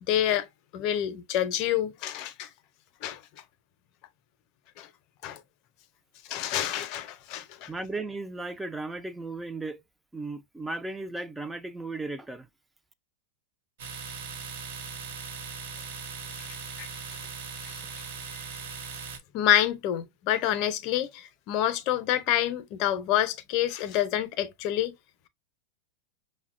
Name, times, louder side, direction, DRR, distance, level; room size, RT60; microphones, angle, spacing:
voice 1, 0.0-0.5 0.7-2.5 3.0-3.2 4.8-4.9 5.2-5.4 6.3-7.7 16.4-16.5 16.8-16.9 17.6-18.0 19.3-24.9, left 11 dB, 50° left, 0.6 m, -27 dB
voice 2, 7.7-9.8 10.1-12.5, right 2 dB, 10° right, 0.4 m, -35 dB
Domestic sounds home sounds, 13.8-19.2, right 5 dB, 70° right, 0.9 m, -39 dB
5.4 x 2.1 x 2.4 m
hypercardioid pair, 110°, 0 cm